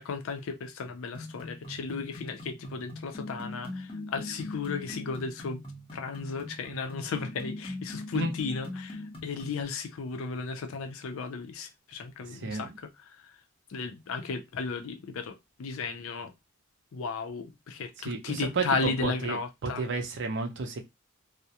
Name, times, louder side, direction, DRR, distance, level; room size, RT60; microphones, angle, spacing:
voice 1, 0.0-5.6 5.9-12.9 13.7-16.3 16.9-19.8, left 4 dB, 70° left, 0.4 m, -35 dB
sound 1, 1.1-9.6, left 2 dB, 25° left, 0.7 m, -41 dB
voice 2, 12.3-12.7 18.0-20.8, right 3 dB, 60° right, 0.5 m, -32 dB
2.3 x 2.0 x 2.7 m
head